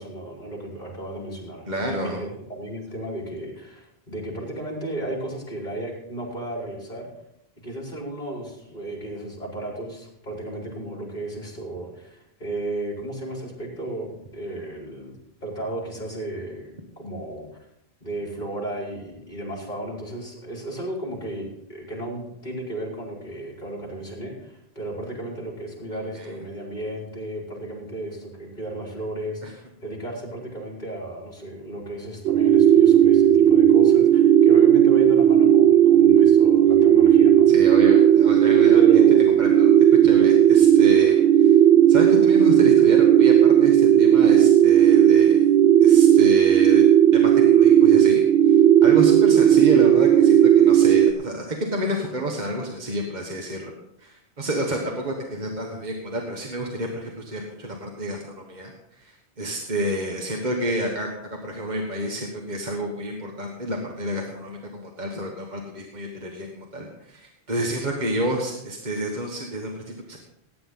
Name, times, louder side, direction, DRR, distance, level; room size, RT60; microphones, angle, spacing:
voice 1, 0.0-7.1 7.6-17.5 18.0-21.4 21.7-37.5 38.7-39.3, right 1 dB, 45° left, -2 dB, 4.6 m, -34 dB
voice 2, 1.7-2.2 25.9-26.3 29.4-29.5 37.5-39.0 39.4-39.7 40.0-41.6 41.9-45.4 45.8-46.8 47.1-53.7 54.0-70.2, right 1 dB, 45° right, 0 dB, 1.6 m, -30 dB
sound 1, 32.2-51.1, right 10 dB, 75° right, 0.9 m, -15 dB
17.5 x 9.5 x 3.8 m, 0.81 s
omnidirectional pair, 1.1 m